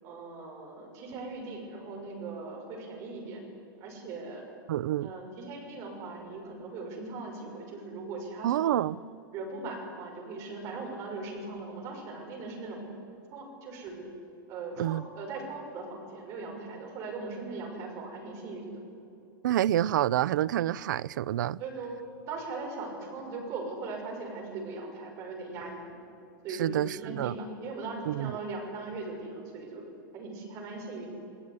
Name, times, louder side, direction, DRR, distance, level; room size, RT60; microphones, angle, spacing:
voice 1, 0.0-3.4 3.8-4.5 5.0-8.8 9.3-12.9 13.3-14.1 14.5-18.8 21.6-22.0 22.3-25.9 26.4-31.1, right 3 dB, 25° right, 6.4 m, -39 dB
voice 2, 4.7-5.1 8.4-9.0 14.8-15.0 19.4-21.6 26.6-27.4 28.1-28.4, right 12 dB, 60° right, 0.5 m, -28 dB
29.5 x 19.5 x 9.9 m
supercardioid pair, 175°, 12 cm